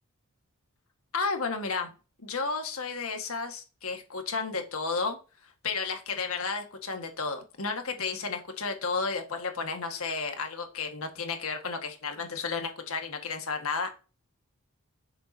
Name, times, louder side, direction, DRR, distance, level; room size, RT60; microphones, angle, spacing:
voice 1, 1.1-1.9 2.2-5.2 5.6-13.9, left 4 dB, 75° left, 5 dB, 1.7 m, -32 dB
9.5 x 6.9 x 2.8 m, 0.33 s
head